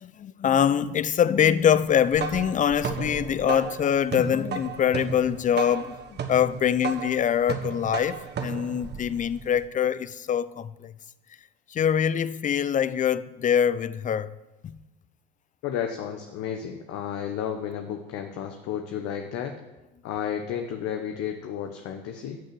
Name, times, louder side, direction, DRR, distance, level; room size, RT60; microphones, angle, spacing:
voice 1, 0.0-6.0 6.3-10.9 11.7-14.3 14.6-14.7, left 8 dB, 25° left, 0.6 m, -24 dB
sound 1, 1.9-9.6, right 6 dB, 35° right, 1.4 m, -34 dB
voice 2, 15.6-19.6 20.0-22.4, left 9 dB, 55° left, 1.2 m, -32 dB
13.5 x 6.5 x 7.7 m
hypercardioid pair, 70°, 29 cm